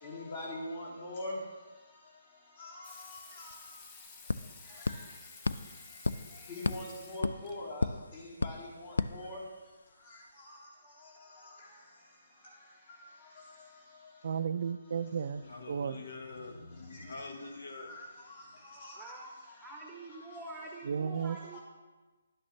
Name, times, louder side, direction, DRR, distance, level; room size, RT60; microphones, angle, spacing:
voice 1, 0.0-1.4 2.6-3.5 4.8-5.0 6.5-7.9 8.1-9.4 10.4-10.6 17.8-18.0 18.6-19.1 21.5-21.6, left 1 dB, 45° left, 3.3 m, -42 dB
Water tap faucet / Sink (filling or washing), 2.8-7.6 9.1-9.2, left 4 dB, 20° left, 0.8 m, -53 dB
sound 1, 3.2-3.3 3.5-9.9, left 3 dB, 90° left, 0.4 m, -36 dB
voice 2, 14.2-15.4 15.7-16.0 20.9-21.4, right 7 dB, 55° right, 0.4 m, -33 dB
voice 3, 15.1-17.9 18.5-18.6, left 3 dB, 70° left, 1.2 m, -46 dB
voice 4, 18.9-19.3 19.6-21.6, right 2 dB, 5° right, 0.9 m, -46 dB
11.5 x 8.6 x 3.2 m
hypercardioid pair, 165°, 0 cm